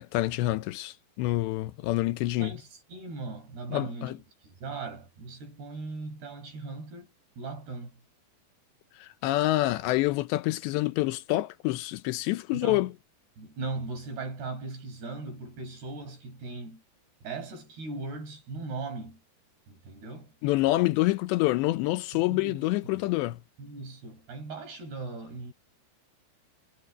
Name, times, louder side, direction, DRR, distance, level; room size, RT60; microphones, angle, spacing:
voice 1, 0.0-2.5 3.7-4.2 9.0-12.9 20.4-23.4, left 18 dB, 80° left, 3.0 m, -27 dB
voice 2, 2.4-8.0 12.5-12.9 13.4-16.8 17.2-19.2 19.7-20.3 22.1-22.7 22.9-23.0 23.6-25.5, right 3 dB, 65° right, 9.3 m, -39 dB
omnidirectional pair, 5.1 m